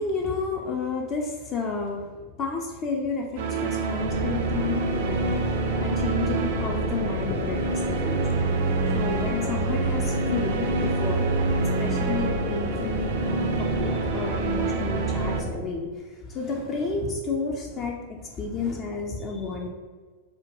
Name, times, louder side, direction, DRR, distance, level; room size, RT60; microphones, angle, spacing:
voice 1, 0.0-2.1 2.4-8.4 8.9-11.3 11.6-19.7, left 4 dB, 30° left, 0 dB, 0.4 m, -31 dB
sound 1, 3.4-15.4, right 3 dB, 55° right, 0.4 m, -27 dB
sound 2, 4.0-15.6, left 1 dB, 45° left, 0.9 m, -32 dB
4.2 x 2.2 x 3.0 m, 1.4 s
figure-of-eight pair, 90°, 0 cm